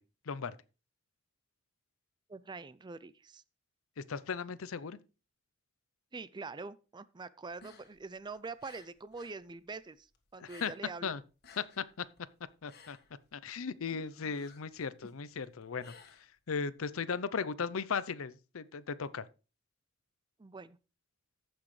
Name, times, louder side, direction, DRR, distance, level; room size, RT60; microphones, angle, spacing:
voice 1, 0.3-0.6 4.0-5.0 10.4-10.7 11.0-11.2 11.6-12.0 12.6-13.0 13.3-15.9 16.5-19.3, left 5 dB, 85° left, 0.6 m, -37 dB
voice 2, 2.3-3.4 6.1-10.1 10.3-11.1 20.4-20.8, right 4 dB, 20° right, 0.4 m, -44 dB
sound 1, 7.5-9.4 9.7-11.0 11.3-16.7, left 4 dB, 50° left, 1.6 m, -58 dB
14.5 x 6.2 x 3.2 m
head